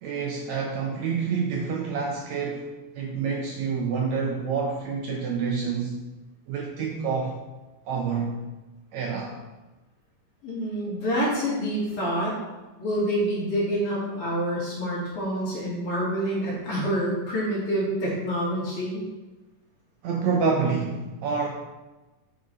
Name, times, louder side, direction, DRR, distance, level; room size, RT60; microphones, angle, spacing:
voice 1, 0.0-2.7 3.0-6.0 6.5-7.4 7.9-8.4 8.9-9.4 20.0-21.5, right 5 dB, 75° right, 0 dB, 1.7 m, -27 dB
voice 2, 10.4-12.3 12.8-19.0, equal, 45° left, -6 dB, 2.7 m, -27 dB
8.2 x 5.0 x 4.0 m, 1.1 s
omnidirectional pair, 3.8 m